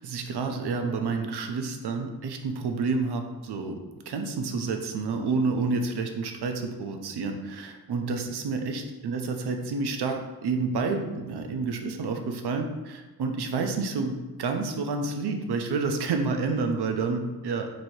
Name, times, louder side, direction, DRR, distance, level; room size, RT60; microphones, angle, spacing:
voice 1, 0.0-3.8 4.1-17.7, right 4 dB, 70° right, 4 dB, 0.5 m, -29 dB
3.1 x 2.7 x 4.2 m, 1.2 s
wide cardioid pair, 160°, 40 cm